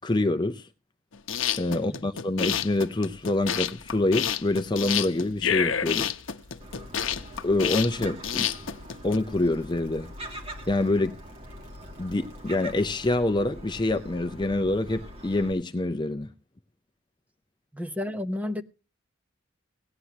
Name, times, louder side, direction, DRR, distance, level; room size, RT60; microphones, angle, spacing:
voice 1, 0.0-0.7 1.6-6.1 7.4-8.5 9.0-10.1 10.7-11.2 12.0-16.3, left 2 dB, 20° left, 0.6 m, -26 dB
sound 1, 1.1-9.2, left 8 dB, 70° left, 0.8 m, -29 dB
voice 2, 1.7-2.1 17.7-18.6, left 1 dB, 10° right, 0.9 m, -32 dB
sound 2, 2.4-13.2, left 1 dB, 65° right, 5.1 m, -55 dB
Gull seagull, 6.6-15.5, equal, 30° right, 2.2 m, -43 dB
18.0 x 9.7 x 2.8 m
head